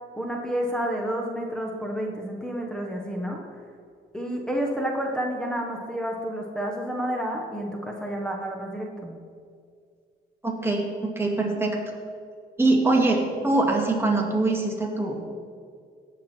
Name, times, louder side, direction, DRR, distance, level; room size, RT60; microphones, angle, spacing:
voice 1, 0.1-3.4 4.1-9.1, equal, 5° left, -1 dB, 1.4 m, -30 dB
voice 2, 10.4-11.8 12.6-15.2, right 2 dB, 10° right, -1 dB, 2.5 m, -23 dB
17.0 x 6.3 x 4.6 m, 2.2 s
cardioid pair, 90°, 20 cm